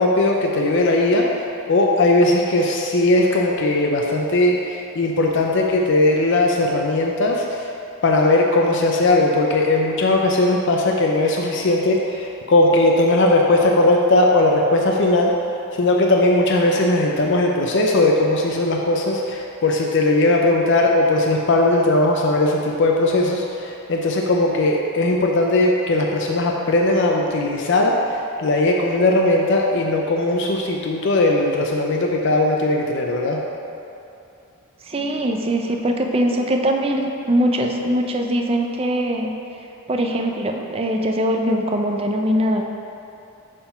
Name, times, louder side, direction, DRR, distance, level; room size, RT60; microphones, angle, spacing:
voice 1, 0.0-7.7 8.0-15.3 15.8-33.4, left 2 dB, 55° left, 0 dB, 0.5 m, -18 dB
voice 2, 34.8-39.3 39.9-42.6, equal, 25° right, 3 dB, 0.5 m, -21 dB
6.8 x 3.7 x 5.7 m, 2.7 s
head